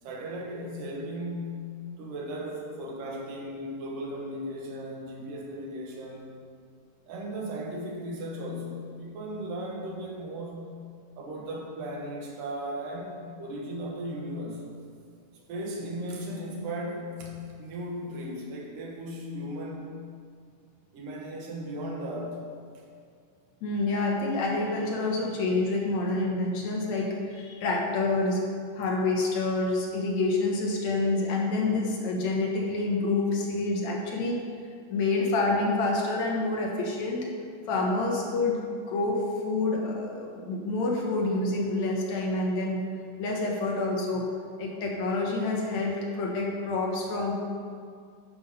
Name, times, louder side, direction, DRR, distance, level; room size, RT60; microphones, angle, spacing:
voice 1, 0.0-6.4 7.1-10.8 11.2-14.6 15.5-19.9 20.9-22.4 22.7-22.8, equal, 85° right, -2 dB, 3.0 m, -36 dB
voice 2, 23.6-28.4 28.7-34.4 34.9-37.3 37.7-38.6 38.9-42.8 43.2-44.3 44.6-47.3, left 2 dB, 65° left, -1 dB, 2.3 m, -27 dB
11.5 x 5.6 x 5.5 m, 2.2 s
omnidirectional pair, 3.7 m